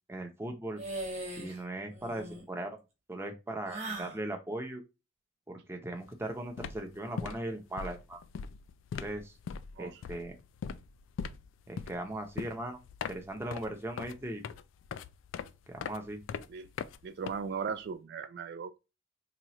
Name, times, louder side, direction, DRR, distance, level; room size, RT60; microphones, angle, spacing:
voice 1, 0.1-0.8 1.4-2.8 3.1-4.8 5.5-8.2 8.9-9.3 9.8-10.4 11.7-12.8 13.1-14.4 15.7-16.2, right 1 dB, 15° right, 0.6 m, -38 dB
sound 1, 0.8-1.6 1.9-2.4 3.7-4.2, right 1 dB, 35° right, 1.2 m, -39 dB
sound 2, 6.0-6.2 6.4-17.9, left 6 dB, 85° left, 0.3 m, -41 dB
voice 2, 17.0-18.8, right 6 dB, 60° right, 0.3 m, -37 dB
3.0 x 2.3 x 4.0 m
head